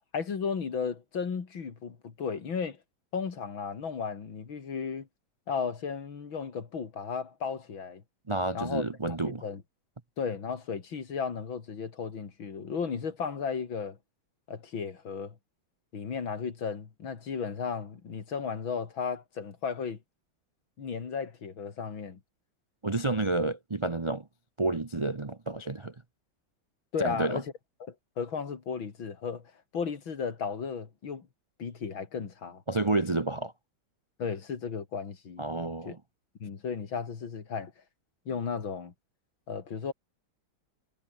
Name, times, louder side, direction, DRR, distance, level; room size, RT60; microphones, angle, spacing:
voice 1, 0.1-2.8 3.1-5.1 5.5-8.0 8.5-9.6 10.2-14.0 14.5-15.4 15.9-20.0 20.8-22.2 26.9-27.5 27.9-31.3 31.6-32.6 34.2-35.4 35.8-36.0 36.4-37.7 38.3-38.9 39.5-39.9, left 6 dB, 70° left, 3.3 m, -34 dB
voice 2, 8.3-9.4 22.8-24.3 24.6-25.9 27.0-27.4 32.7-33.5 35.4-36.0, right 2 dB, 50° right, 0.3 m, -30 dB
omnidirectional pair, 2.3 m